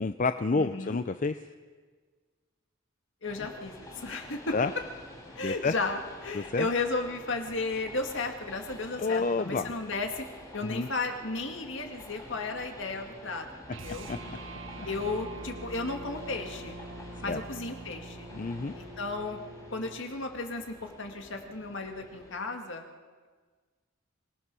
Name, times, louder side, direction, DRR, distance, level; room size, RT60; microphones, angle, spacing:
voice 1, 0.0-1.4 3.4-3.5 4.5-4.7 5.4-5.7 6.3-6.7 9.0-9.7 10.6-10.9 14.1-14.4 17.3-17.4 18.3-18.7, left 4 dB, 40° left, 10 dB, 0.5 m, -29 dB
voice 2, 0.6-1.0 3.2-4.5 5.3-10.2 10.5-14.1 14.9-16.8 17.2-18.3 18.8-19.4 19.7-22.8, left 3 dB, 65° left, 4 dB, 2.1 m, -34 dB
Train, 3.2-22.4, left 1 dB, 20° left, 5.1 m, -49 dB
sound 1, 13.7-20.1, right 1 dB, 70° right, 1.4 m, -44 dB
25.5 x 18.0 x 6.2 m, 1.5 s
head